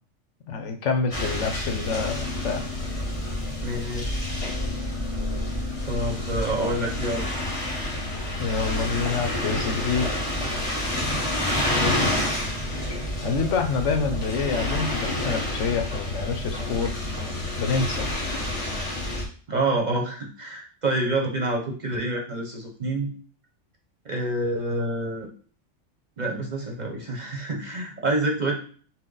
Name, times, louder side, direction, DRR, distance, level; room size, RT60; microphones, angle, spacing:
voice 1, 0.5-2.6 8.4-10.3 13.2-17.0 17.6-18.1, left 5 dB, 75° left, 5 dB, 1.1 m, -27 dB
sound 1, 1.1-19.2, left 1 dB, 30° left, 1.3 m, -28 dB
voice 2, 3.6-4.3 5.9-7.3 11.7-12.3 19.5-23.1 24.0-25.3 26.2-28.5, right 1 dB, 40° right, 1 dB, 0.9 m, -27 dB
5.9 x 2.1 x 3.9 m, 0.43 s
omnidirectional pair, 1.3 m